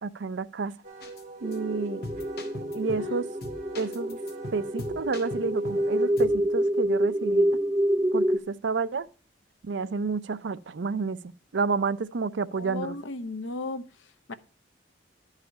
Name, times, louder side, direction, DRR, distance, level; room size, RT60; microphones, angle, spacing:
voice 1, 0.0-0.7 1.4-2.0 2.7-3.2 3.8-4.2 4.5-7.5 8.1-9.1 9.6-11.2 11.5-13.0, right 4 dB, 70° right, 0.5 m, -30 dB
Wind instrument woodwind instrument, 0.8-6.1, right 3 dB, 40° right, 1.9 m, -44 dB
sound 1, 1.0-1.2 1.5-1.6 2.0-3.1 3.4-5.9 6.2-6.4, left 1 dB, 55° left, 1.6 m, -40 dB
sound 2, 1.4-8.4, equal, 10° right, 0.7 m, -27 dB
voice 2, 12.5-14.3, left 3 dB, 85° left, 0.8 m, -36 dB
11.0 x 4.9 x 5.4 m
head